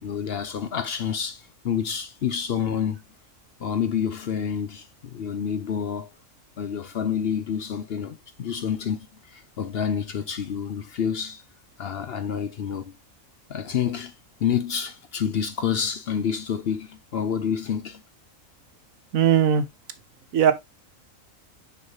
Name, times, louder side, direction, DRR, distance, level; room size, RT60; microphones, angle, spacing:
voice 1, 0.0-3.0 3.6-6.1 6.6-9.1 9.3-11.4 11.8-12.9 13.5-14.1 14.4-18.0, left 8 dB, 60° left, 0.7 m, -28 dB
voice 2, 19.1-19.6 20.3-20.5, right 8 dB, 80° right, 1.3 m, -18 dB
6.3 x 5.5 x 2.8 m
omnidirectional pair, 1.4 m